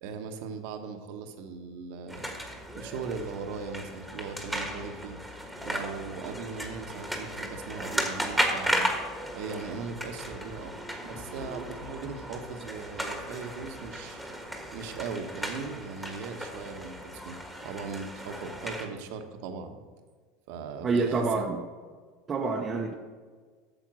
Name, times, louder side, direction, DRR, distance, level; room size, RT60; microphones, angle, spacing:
voice 1, 0.0-2.3 2.7-5.2 5.6-8.9 9.3-10.7 11.0-14.2 14.7-17.4 17.6-19.8 20.5-21.4, right 5 dB, 70° right, 6 dB, 1.2 m, -38 dB
sound 1, 2.1-18.9, equal, ahead, 1.5 m, -35 dB
voice 2, 20.8-21.6 22.3-23.0, right 4 dB, 25° right, 2 dB, 0.8 m, -27 dB
9.0 x 7.1 x 6.2 m, 1.6 s
supercardioid pair, 120°, 0 cm